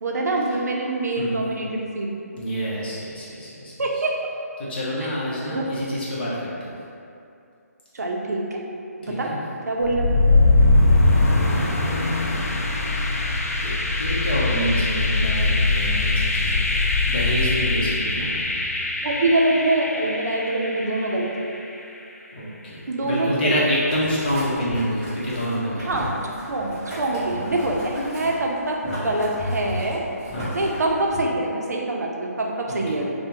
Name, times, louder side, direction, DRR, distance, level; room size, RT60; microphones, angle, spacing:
voice 1, 0.0-2.2 3.8-4.2 5.0-5.1 5.5-5.6 7.9-8.6 9.0-9.3 9.7-10.4 19.0-21.3 22.9-23.6 25.8-26.2 26.5-30.0 30.5-33.1, right 2 dB, 80° right, -1 dB, 0.5 m, -25 dB
voice 2, 2.3-3.7 4.6-6.7 9.1-9.4 11.4-12.5 13.6-18.3 22.3-25.8 30.3-30.5 32.7-33.0, equal, 35° left, -8 dB, 0.8 m, -27 dB
sound 1, 9.8-21.7, left 2 dB, 60° left, 0.4 m, -21 dB
Boiling, 23.9-31.2, left 1 dB, 15° right, 0.7 m, -34 dB
3.2 x 2.1 x 2.9 m, 2.6 s
hypercardioid pair, 165°, 9 cm